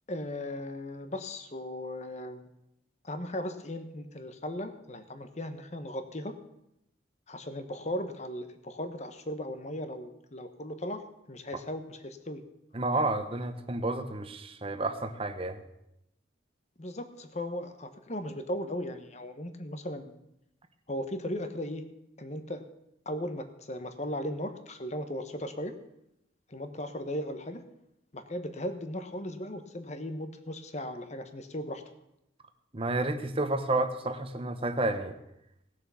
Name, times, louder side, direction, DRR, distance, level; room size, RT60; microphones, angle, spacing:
voice 1, 0.1-2.4 3.0-6.3 7.3-12.4 16.8-20.1 20.9-21.8 22.2-22.6 23.0-25.7 26.5-27.6 28.1-31.8, left 1 dB, 35° left, 9 dB, 1.1 m, -37 dB
voice 2, 12.7-15.6 32.7-35.2, right 2 dB, 30° right, 7 dB, 1.0 m, -30 dB
18.0 x 6.7 x 7.0 m, 0.84 s
head